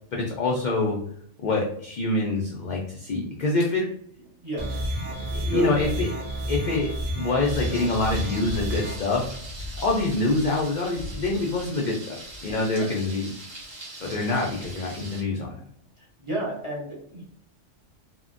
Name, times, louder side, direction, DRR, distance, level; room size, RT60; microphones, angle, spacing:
voice 1, 0.1-1.0 1.4-3.8 5.3-6.1 6.5-6.9 7.1-9.3 9.8-12.2 12.4-13.3 14.0-15.6, left 2 dB, 60° left, -2 dB, 0.5 m, -25 dB
voice 2, 4.4-4.8 5.4-5.7 12.8-12.9 14.0-14.2 16.0-17.2, right 1 dB, 30° right, -4 dB, 0.7 m, -32 dB
sound 1, 4.6-9.0, equal, 70° right, 1.2 m, -30 dB
Thunder, 7.4-15.2, equal, 85° right, 1.5 m, -40 dB
3.5 x 2.1 x 2.5 m, 0.68 s
omnidirectional pair, 1.3 m